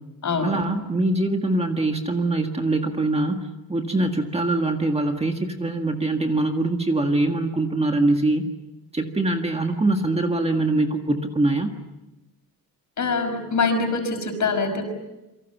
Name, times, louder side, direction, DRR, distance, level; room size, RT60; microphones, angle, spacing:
voice 1, 0.4-8.5 8.9-11.7, right 2 dB, 15° right, 4 dB, 1.7 m, -23 dB
voice 2, 13.0-14.9, left 4 dB, 55° left, 6 dB, 5.6 m, -24 dB
28.5 x 24.5 x 7.2 m, 0.99 s
wide cardioid pair, 175°, 36 cm